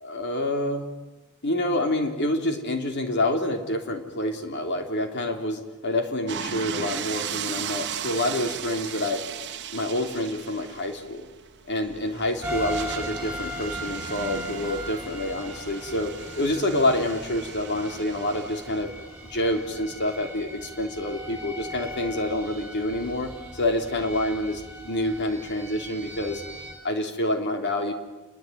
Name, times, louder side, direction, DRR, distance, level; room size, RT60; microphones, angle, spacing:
voice 1, 0.0-0.9 1.4-9.2 9.7-11.3 11.7-18.9 19.2-26.4 26.8-27.9, left 1 dB, 55° left, 5 dB, 3.3 m, -27 dB
sound 1, 6.3-18.8, right 8 dB, 55° right, 1.3 m, -37 dB
sound 2, 12.4-26.7, right 1 dB, 5° right, 6.9 m, -38 dB
29.5 x 21.0 x 9.3 m, 1.1 s
head